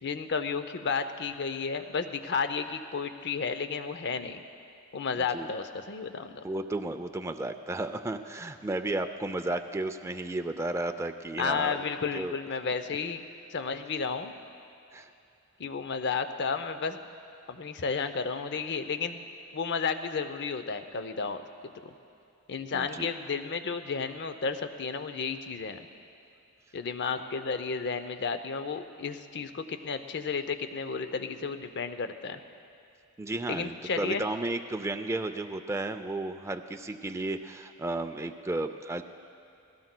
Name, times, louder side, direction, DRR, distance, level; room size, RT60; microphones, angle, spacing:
voice 1, 0.0-4.4 4.9-6.4 11.4-13.2 13.5-14.3 15.6-17.0 17.5-19.2 19.5-21.9 22.5-25.9 26.7-32.4 33.5-34.2, left 5 dB, 55° left, 9 dB, 0.6 m, -32 dB
voice 2, 6.4-11.8 12.1-12.4 14.9-15.1 22.7-23.1 33.2-39.0, right 2 dB, 15° right, 7 dB, 0.4 m, -33 dB
20.5 x 17.0 x 2.2 m, 2.7 s
head